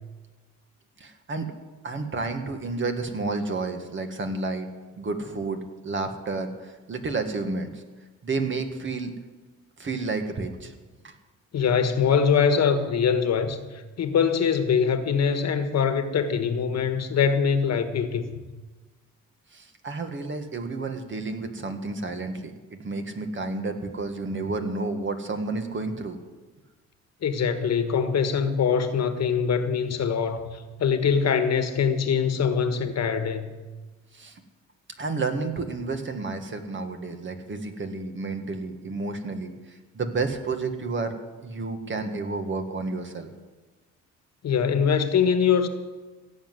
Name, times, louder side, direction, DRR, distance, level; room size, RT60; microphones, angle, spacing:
voice 1, 1.0-1.5 1.8-4.7 5.0-7.8 8.2-9.2 9.8-10.7 11.0-11.1 19.5-26.2 34.1-34.4 35.0-41.1 41.4-43.3, right 3 dB, 40° right, 6 dB, 1.9 m, -31 dB
voice 2, 11.5-13.6 14.0-18.3 27.2-33.5 44.4-45.7, left 6 dB, 60° left, 8 dB, 1.5 m, -23 dB
16.5 x 7.9 x 8.0 m, 1.3 s
cardioid pair, 90°, 30 cm